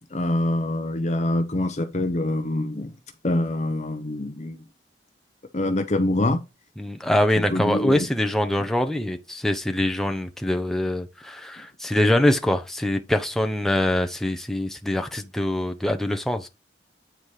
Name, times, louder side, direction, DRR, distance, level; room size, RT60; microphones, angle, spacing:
voice 1, 0.1-2.9 3.2-4.6 5.5-6.4 7.5-8.1, left 1 dB, 40° left, 0.7 m, -25 dB
voice 2, 6.8-16.5, left 1 dB, ahead, 0.7 m, -24 dB
9.1 x 4.1 x 4.9 m
head